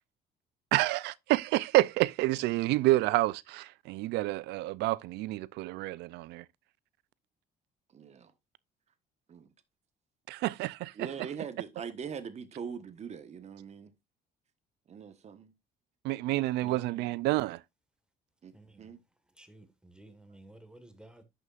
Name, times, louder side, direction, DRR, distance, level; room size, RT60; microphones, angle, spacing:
voice 1, 0.7-6.4 10.3-10.9 16.0-17.6, right 18 dB, 85° right, 0.4 m, -28 dB
voice 2, 7.9-8.3 9.3-9.5 11.0-13.9 14.9-15.5 18.4-18.5 18.8-19.0, right 6 dB, 40° right, 1.2 m, -42 dB
voice 3, 16.6-16.9 18.5-18.9 19.4-21.2, right 1 dB, 5° right, 1.5 m, -53 dB
11.0 x 6.4 x 2.4 m
cardioid pair, 110°, 17 cm